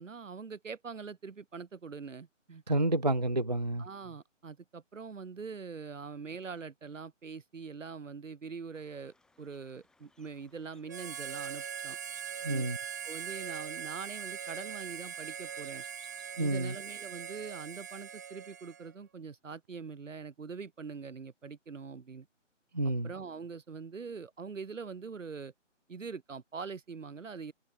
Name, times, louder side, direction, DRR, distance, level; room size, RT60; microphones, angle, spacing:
voice 1, 0.0-2.6 3.8-12.0 12.5-12.7 13.0-15.8 16.4-22.3 22.8-25.5 25.9-27.5, right 5 dB, 80° right, 1.8 m, -43 dB
voice 2, 2.7-3.9 12.4-12.8 16.4-16.8 22.7-23.1, right 2 dB, 35° right, 0.4 m, -29 dB
sound 1, 8.7-16.7, left 2 dB, ahead, 4.1 m, -68 dB
Harmonica, 10.9-18.9, right 8 dB, 15° right, 1.0 m, -41 dB
hypercardioid pair, 170°, 38 cm